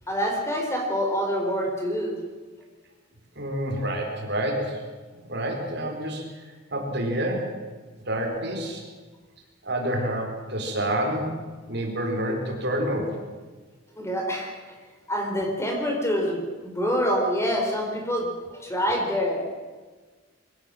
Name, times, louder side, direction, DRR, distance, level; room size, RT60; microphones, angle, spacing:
voice 1, 0.1-2.1 14.0-14.5 15.1-19.4, equal, 15° left, 1 dB, 4.0 m, -26 dB
voice 2, 3.4-4.8 5.3-6.2 6.7-7.5 8.1-8.8 9.6-11.3 11.7-13.2, right 1 dB, 55° right, 2 dB, 4.2 m, -28 dB
22.0 x 16.5 x 7.6 m, 1.4 s
head